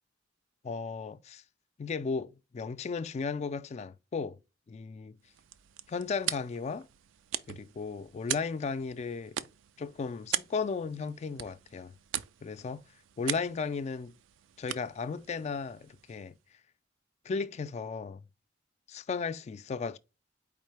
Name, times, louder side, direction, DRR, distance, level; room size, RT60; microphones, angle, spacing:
voice 1, 0.6-1.4 1.8-4.4 4.7-5.2 5.9-6.9 7.5-9.4 9.8-11.9 12.4-12.8 13.2-14.1 14.6-16.3 17.2-18.2 18.9-20.0, left 5 dB, 35° left, 0.3 m, -35 dB
sound 1, 5.2-16.4, right 11 dB, 80° right, 0.4 m, -41 dB
4.6 x 3.6 x 3.2 m
head